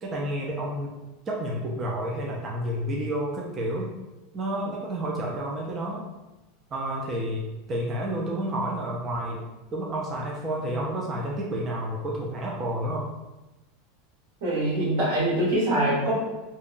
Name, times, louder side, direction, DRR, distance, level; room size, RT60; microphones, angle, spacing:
voice 1, 0.0-1.0 1.3-3.9 4.3-6.1 6.7-9.4 9.7-13.1, right 1 dB, 25° right, -2 dB, 0.3 m, -30 dB
voice 2, 14.4-16.2, right 1 dB, 85° right, -7 dB, 1.4 m, -24 dB
2.7 x 2.1 x 2.5 m, 1.1 s
supercardioid pair, 160°, 0 cm